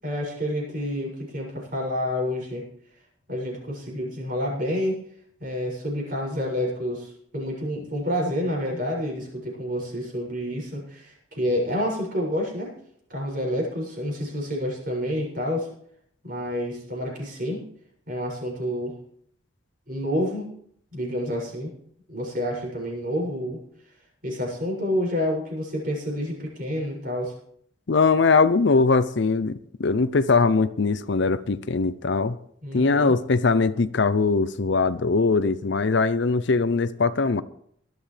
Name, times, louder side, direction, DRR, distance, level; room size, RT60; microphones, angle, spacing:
voice 1, 0.0-2.6 3.3-5.0 5.4-12.7 13.1-15.7 16.2-17.6 18.1-18.9 19.9-20.5 20.9-21.7 22.1-23.6 24.2-27.3 32.6-33.1, equal, 45° right, 6.8 m, -28 dB
voice 2, 27.9-32.4 32.7-37.4, left 4 dB, 55° left, 0.5 m, -21 dB
19.0 x 12.5 x 3.4 m
head